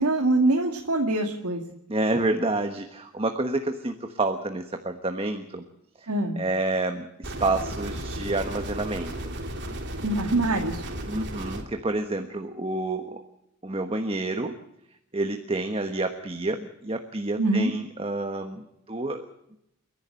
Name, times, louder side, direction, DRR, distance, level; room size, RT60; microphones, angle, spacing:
voice 1, 0.0-1.6 6.1-6.4 10.0-10.9 17.4-17.7, right 2 dB, 85° right, 1 dB, 2.2 m, -24 dB
voice 2, 1.9-5.6 6.0-6.1 6.3-9.3 11.1-13.2 13.6-14.6 15.1-19.2, right 2 dB, 25° right, 6 dB, 1.3 m, -29 dB
sound 1, 7.2-11.6, right 1 dB, 50° right, 3.2 m, -34 dB
30.0 x 11.5 x 9.0 m, 0.80 s
head